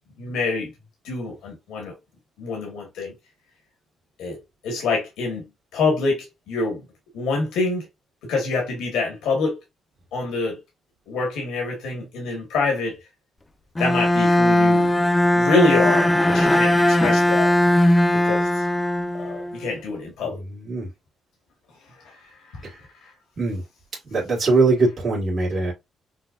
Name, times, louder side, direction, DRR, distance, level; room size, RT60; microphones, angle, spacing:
voice 1, 0.2-0.7 1.0-1.9 2.4-3.1 4.2-5.4 5.7-6.9 7.1-7.9 8.2-9.6 10.1-10.6 11.1-13.0 13.8-14.9 15.3-17.5 18.1-18.6 19.2-20.4 22.0-23.1, left 3 dB, 85° left, 1.5 m, -26 dB
Bowed string instrument, 13.8-19.7, left 1 dB, 15° left, 0.4 m, -19 dB
voice 2, 20.2-20.9 22.6-22.8 23.4-23.6 24.1-25.7, right 3 dB, 40° right, 1.6 m, -22 dB
5.6 x 2.1 x 2.4 m
cardioid pair, 90°, 0 cm